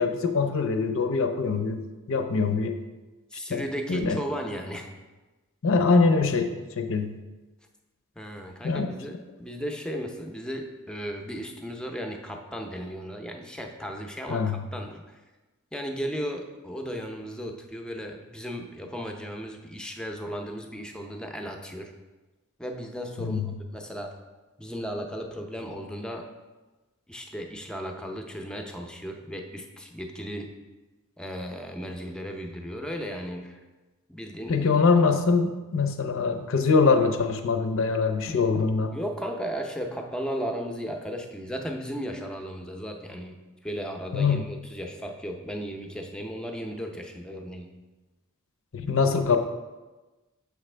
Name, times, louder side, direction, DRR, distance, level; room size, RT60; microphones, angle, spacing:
voice 1, 0.0-1.8 2.1-2.8 3.5-3.6 3.9-4.2 5.6-6.5 6.8-7.1 8.6-8.9 14.3-14.6 23.2-23.5 34.5-38.9 44.1-44.4 48.7-49.4, left 4 dB, 70° left, 6 dB, 0.6 m, -23 dB
voice 2, 3.3-4.9 8.2-14.4 14.7-15.2 15.7-21.9 22.6-23.4 23.7-24.1 24.6-26.3 27.1-30.5 31.2-33.6 34.1-34.7 35.0-35.1 38.9-43.4 43.6-47.7, equal, 5° left, 3 dB, 0.5 m, -35 dB
6.8 x 5.0 x 3.3 m, 1.2 s
head